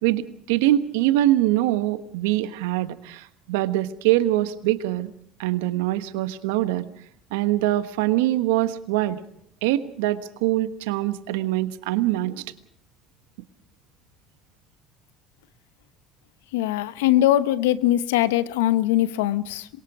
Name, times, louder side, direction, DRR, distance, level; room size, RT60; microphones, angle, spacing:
voice 1, 0.0-5.1 5.4-6.9 7.3-9.2 9.6-12.4, right 15 dB, 80° right, 12 dB, 1.2 m, -23 dB
voice 2, 16.5-19.7, left 13 dB, 80° left, 14 dB, 0.9 m, -21 dB
27.0 x 23.0 x 5.0 m, 0.66 s
hypercardioid pair, 70°, 0 cm